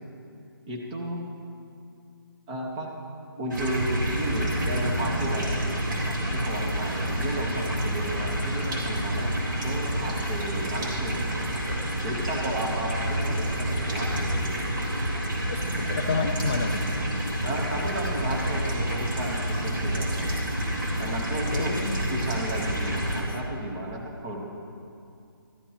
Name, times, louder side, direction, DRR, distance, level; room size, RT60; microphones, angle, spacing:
voice 1, 0.7-1.2 2.5-2.9 3.4-5.6 6.0-9.3 9.6-11.2 12.0-14.6 17.4-20.2 21.0-21.7 22.1-24.4, right 1 dB, 15° right, 0 dB, 1.1 m, -33 dB
sound 1, 3.5-23.2, right 1 dB, 55° right, 3.6 m, -28 dB
voice 2, 15.5-16.8 21.5-22.0 23.3-23.4, left 5 dB, 25° left, 2 dB, 0.4 m, -30 dB
19.0 x 14.0 x 2.9 m, 2.5 s
hypercardioid pair, 165°, 13 cm